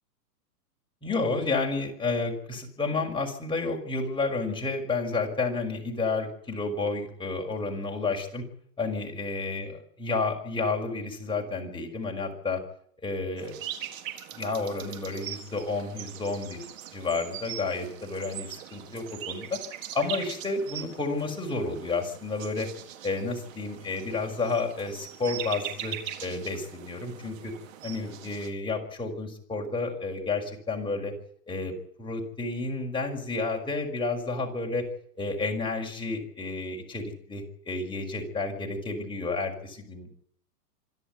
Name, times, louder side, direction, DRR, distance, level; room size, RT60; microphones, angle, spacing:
voice 1, 1.0-8.4 8.8-12.6 13.0-13.5 14.3-16.6 16.9-19.6 19.9-22.7 23.0-27.5 27.8-31.1 31.5-31.7 32.0-34.9 35.2-40.2, left 3 dB, 10° left, 0 dB, 5.9 m, -31 dB
sound 1, 13.4-28.5, right 10 dB, 55° right, 4.2 m, -41 dB
26.5 x 12.5 x 9.7 m, 0.64 s
hypercardioid pair, 130°, 48 cm